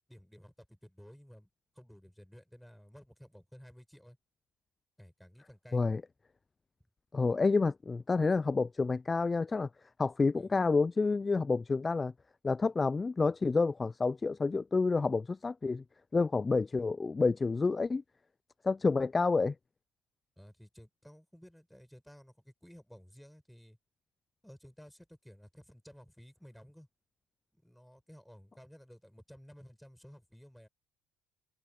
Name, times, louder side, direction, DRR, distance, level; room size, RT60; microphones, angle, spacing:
voice 1, 0.0-1.5 1.7-4.2 5.0-5.8 10.3-10.5 20.4-23.8 24.4-26.9 27.5-30.7, equal, ahead, 6.6 m, -55 dB
voice 2, 7.1-9.7 10.0-12.1 12.4-15.8 16.1-18.0 18.6-19.5, left 4 dB, 25° left, 0.4 m, -29 dB
hypercardioid pair, 60°, 0 cm